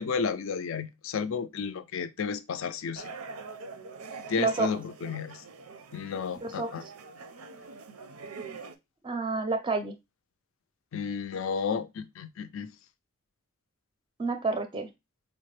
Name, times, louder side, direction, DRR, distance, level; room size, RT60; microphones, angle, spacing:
voice 1, 0.0-3.0 4.3-5.4 5.9-6.8 10.9-12.7, left 6 dB, 65° left, 0.4 m, -32 dB
sound 1, 3.0-8.7, right 4 dB, 85° right, 0.5 m, -44 dB
voice 2, 4.4-4.7 6.4-6.7 9.0-9.9 14.2-14.9, right 3 dB, 20° right, 0.5 m, -29 dB
4.8 x 2.1 x 3.2 m
head